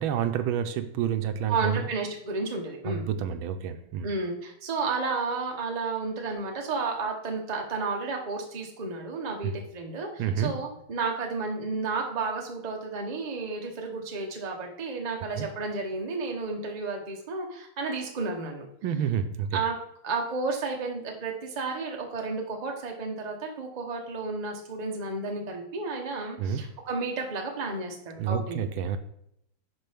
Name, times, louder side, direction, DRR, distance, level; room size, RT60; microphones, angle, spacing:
voice 1, 0.0-1.9 2.8-4.1 9.4-9.5 10.2-10.5 15.4-15.5 18.8-19.6 26.4-26.6 28.2-29.0, right 8 dB, 85° right, 9 dB, 1.4 m, -29 dB
voice 2, 1.5-3.1 4.0-18.7 19.5-19.7 20.0-28.6, right 4 dB, 30° right, 1 dB, 0.8 m, -32 dB
11.0 x 4.0 x 3.5 m, 0.74 s
omnidirectional pair, 2.2 m